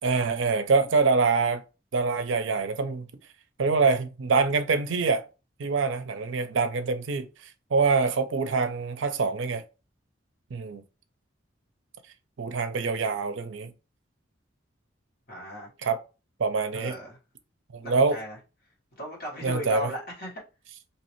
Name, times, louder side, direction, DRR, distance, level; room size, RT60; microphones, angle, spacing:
voice 1, 0.0-1.6 1.9-3.1 3.6-5.2 5.6-7.3 7.7-9.6 10.5-10.8 12.4-13.7 15.8-16.0 16.4-17.0 17.7-18.2 19.4-19.9, right 4 dB, 75° right, 0.5 m, -25 dB
voice 2, 15.3-15.7 16.7-17.2 17.8-18.4 18.9-20.4, equal, 50° left, 1.5 m, -36 dB
3.2 x 2.8 x 3.0 m
head